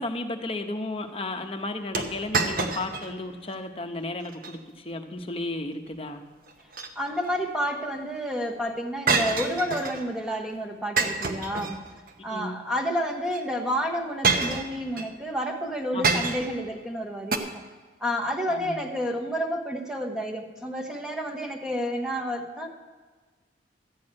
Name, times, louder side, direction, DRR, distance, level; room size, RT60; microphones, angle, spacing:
voice 1, 0.0-6.2 12.3-12.6 15.9-16.4 18.5-18.8, left 2 dB, 30° left, 6 dB, 0.9 m, -34 dB
sound 1, 1.9-3.1 3.5-3.6 4.2-4.6 6.5-7.3 9.1-10.1 11.0-12.1 13.3-13.4 14.2-15.1 16.0-16.6 17.3-17.4, right 4 dB, 50° right, 1.0 m, -27 dB
voice 2, 7.0-11.8 12.2-17.6 18.0-22.7, equal, 5° right, 2 dB, 1.0 m, -30 dB
13.0 x 6.2 x 8.7 m, 1.4 s
head